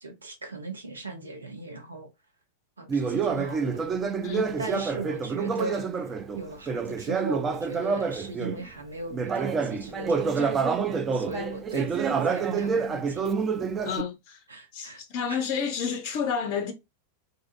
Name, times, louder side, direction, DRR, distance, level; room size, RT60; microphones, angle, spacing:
voice 1, 0.0-2.1 2.8-3.7 4.6-6.0 6.3-10.6 10.9-13.2 14.5-15.0 15.3-15.4, right 2 dB, 75° right, 0.6 m, -38 dB
Conversation, 2.9-8.6 9.1-14.0, right 5 dB, 25° right, 0.3 m, -28 dB
voice 2, 4.2-4.6 13.8-14.4 14.7-16.7, left 7 dB, 45° left, 0.4 m, -30 dB
2.6 x 2.4 x 2.4 m
figure-of-eight pair, 90°, 0 cm